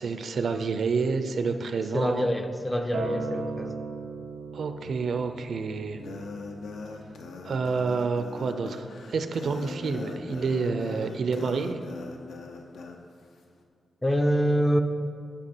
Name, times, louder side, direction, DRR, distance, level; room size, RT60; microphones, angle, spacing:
voice 1, 0.0-2.3 4.5-6.0 7.4-11.8, right 4 dB, 55° right, 8 dB, 0.5 m, -28 dB
voice 2, 1.9-3.8 14.0-14.8, equal, 10° left, 6 dB, 0.4 m, -25 dB
Acoustic guitar, 2.9-8.1, right 4 dB, 90° right, 0.8 m, -39 dB
sound 1, 6.0-13.0, left 3 dB, 80° left, 0.7 m, -40 dB
9.8 x 6.0 x 4.3 m, 2.6 s
wide cardioid pair, 165°, 0 cm